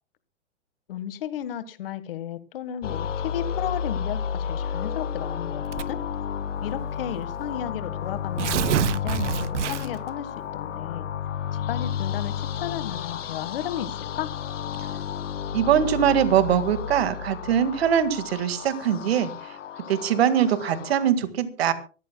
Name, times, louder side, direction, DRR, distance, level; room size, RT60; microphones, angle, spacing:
voice 1, 0.9-6.0 6.6-11.1 11.7-14.3, left 10 dB, 50° left, 12 dB, 1.6 m, -34 dB
sound 1, 2.8-21.1, left 8 dB, 85° left, 1.2 m, -32 dB
Tearing, 5.7-6.1 7.0-7.1 7.4-7.5 8.1-10.1, right 13 dB, 75° right, 0.6 m, -27 dB
voice 2, 15.5-19.3 19.9-21.7, right 9 dB, 55° right, 11 dB, 1.9 m, -22 dB
24.5 x 14.5 x 2.3 m, 0.36 s
hypercardioid pair, 160°, 37 cm